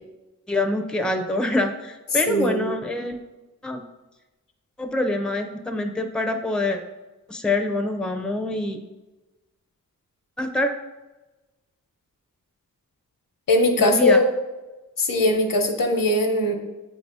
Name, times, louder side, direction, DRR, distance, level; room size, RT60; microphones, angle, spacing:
voice 1, 0.5-3.2 3.6-3.8 4.8-6.8 7.3-8.8 10.4-10.7 13.8-14.2, left 2 dB, 5° left, 5 dB, 0.5 m, -25 dB
voice 2, 2.3-2.6 13.5-14.2 15.0-16.5, left 1 dB, 80° left, 4 dB, 0.9 m, -20 dB
7.7 x 2.7 x 4.7 m, 1.1 s
wide cardioid pair, 80°, 33 cm